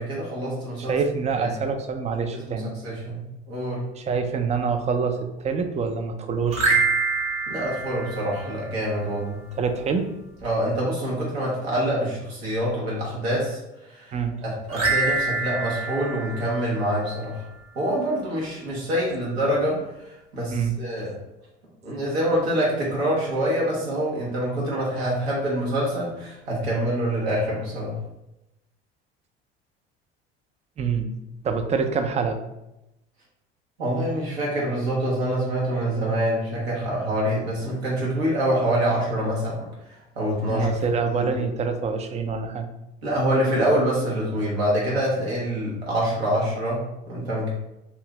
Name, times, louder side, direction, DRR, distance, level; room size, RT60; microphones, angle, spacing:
voice 1, 0.0-0.9 1.4-1.6 2.3-3.9 7.5-9.4 10.4-13.6 13.9-14.2 14.4-17.4 17.7-21.2 21.8-28.0 33.8-39.7 40.1-40.7 41.1-41.3 43.0-47.5, right 1 dB, 85° right, -5 dB, 1.3 m, -26 dB
voice 2, 0.9-2.7 4.0-6.7 9.5-10.1 14.1-14.4 20.5-20.8 30.8-31.1 31.4-32.4 40.5-42.7, right 5 dB, 20° right, 7 dB, 0.4 m, -26 dB
sound 1, 6.5-9.0 14.7-17.3, right 4 dB, 45° right, 1.2 m, -26 dB
3.0 x 2.6 x 3.1 m, 0.91 s
hypercardioid pair, 70°, 30 cm